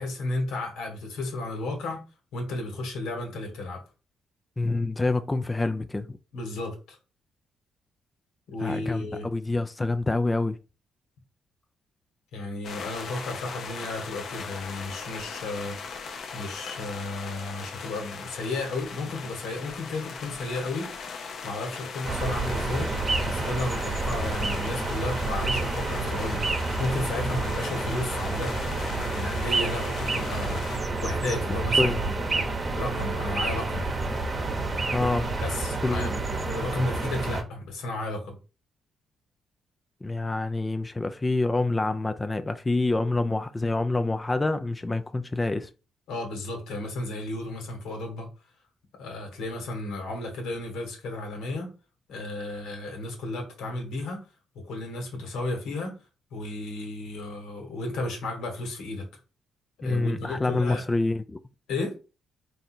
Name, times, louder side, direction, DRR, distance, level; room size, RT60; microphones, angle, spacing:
voice 1, 0.0-2.0 2.3-3.8 6.3-7.0 8.5-9.3 12.3-16.0 16.3-20.9 21.4-22.9 23.3-28.5 28.8-30.6 31.0-32.1 32.7-33.9 35.4-38.4 46.1-48.3 49.0-51.7 52.1-54.2 54.5-56.0 56.3-59.1 59.8-60.8 61.7-61.9, left 2 dB, 85° left, 1.4 m, -33 dB
voice 2, 4.6-6.2 8.6-10.6 31.8-32.0 34.9-35.3 35.8-36.1 40.0-45.7 59.8-61.4, left 2 dB, 20° left, 0.3 m, -27 dB
sound 1, 12.6-30.8, left 5 dB, 60° left, 0.6 m, -39 dB
sound 2, 22.0-37.4, right 3 dB, 30° right, 0.9 m, -29 dB
3.7 x 2.6 x 4.2 m
cardioid pair, 90°, 0 cm